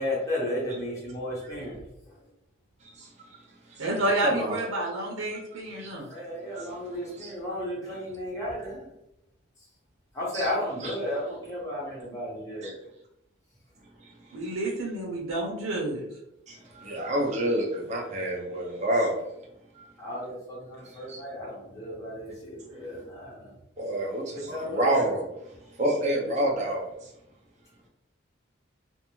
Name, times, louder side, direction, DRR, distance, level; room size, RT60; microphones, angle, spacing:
voice 1, 0.0-2.1 6.1-8.9 10.1-12.8 16.8-17.1 20.0-23.5 24.3-25.0, left 1 dB, 15° left, -6 dB, 0.9 m, -34 dB
voice 2, 3.0-3.4 4.0-4.6 5.8-6.0 6.6-6.7 7.2-7.3 10.3-10.5 10.8-10.9 12.6-12.7 14.0-14.1 16.5-19.2 19.7-19.9 21.1-21.2 23.8-25.2 25.7-27.1, right 1 dB, 35° right, -1 dB, 0.6 m, -28 dB
voice 3, 3.8-6.1 14.3-16.0, right 1 dB, 80° right, -2 dB, 0.7 m, -29 dB
2.6 x 2.1 x 3.0 m, 0.83 s
head